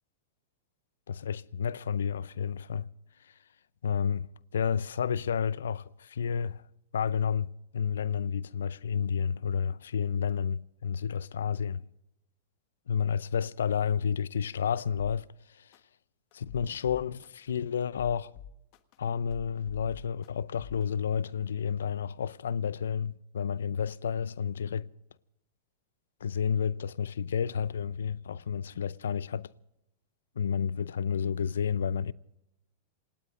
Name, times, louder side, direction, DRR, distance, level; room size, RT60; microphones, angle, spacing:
voice 1, 1.1-2.9 3.2-3.3 3.8-4.3 4.5-6.6 6.9-7.5 7.7-11.8 12.9-15.7 16.3-18.3 19.0-24.9 26.2-29.5 30.4-32.1, left 7 dB, 85° left, 0.5 m, -31 dB
sound 1, 15.7-15.8 16.3-17.3 17.8-19.0 19.3-20.3 20.6-20.8, left 8 dB, 50° left, 1.4 m, -47 dB
27.5 x 19.0 x 2.6 m
hypercardioid pair, 115°, 0 cm